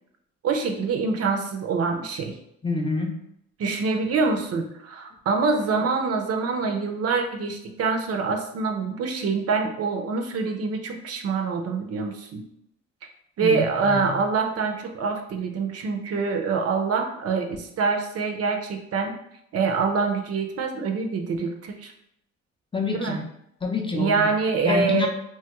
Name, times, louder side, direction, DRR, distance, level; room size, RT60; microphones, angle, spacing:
voice 1, 0.4-2.3 3.6-12.4 13.4-19.1 19.5-21.9 22.9-23.2 23.9-25.1, right 4 dB, 55° right, 4 dB, 0.5 m, -25 dB
voice 2, 2.6-3.2 13.4-14.2 22.7-23.2 23.6-24.2 24.6-25.1, left 3 dB, 15° left, 2 dB, 0.5 m, -27 dB
3.0 x 2.3 x 2.9 m, 0.76 s
cardioid pair, 90°, 30 cm